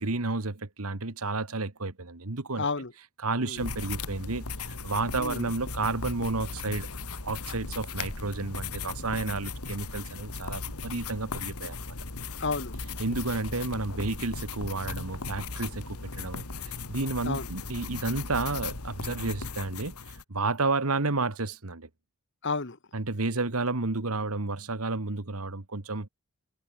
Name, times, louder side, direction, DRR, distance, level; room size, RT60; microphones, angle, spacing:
voice 1, 0.0-2.7 3.2-6.9 7.2-11.8 13.0-21.9 22.9-26.1, right 3 dB, 80° right, 1.7 m, -31 dB
voice 2, 2.6-2.9 3.4-3.6 5.2-5.5 12.4-12.8 17.2-17.5 22.4-22.8, left 4 dB, 55° left, 1.5 m, -31 dB
sound 1, 3.6-20.2, left 4 dB, 85° left, 2.6 m, -37 dB
head